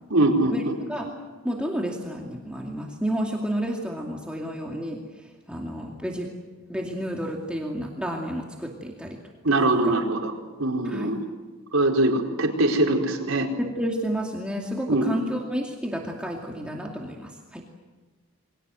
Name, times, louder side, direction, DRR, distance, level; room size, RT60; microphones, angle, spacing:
voice 1, 0.1-0.7 1.0-1.1 9.4-10.3 10.6-11.2 11.7-13.5 14.9-15.1, right 2 dB, 75° right, 1 dB, 4.5 m, -22 dB
voice 2, 1.4-5.0 5.5-6.3 6.7-9.2 9.8-9.9 10.8-11.1 13.6-17.6, equal, 5° right, -1 dB, 2.5 m, -30 dB
28.5 x 23.5 x 7.9 m, 1.3 s
head